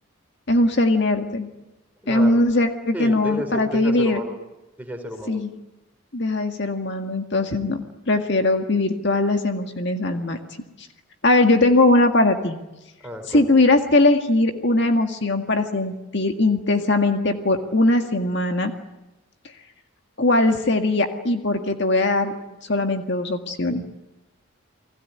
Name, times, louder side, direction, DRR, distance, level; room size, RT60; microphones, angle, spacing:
voice 1, 0.5-1.5 2.1-4.2 5.3-5.5 6.1-10.4 11.2-12.6 13.3-18.7 20.2-22.3 22.6-23.8, left 2 dB, 55° left, 5 dB, 1.9 m, -20 dB
voice 2, 2.0-2.6 2.9-4.4 4.8-5.5 13.0-13.6, equal, 5° right, 3 dB, 4.3 m, -32 dB
30.0 x 20.5 x 9.6 m, 0.99 s
head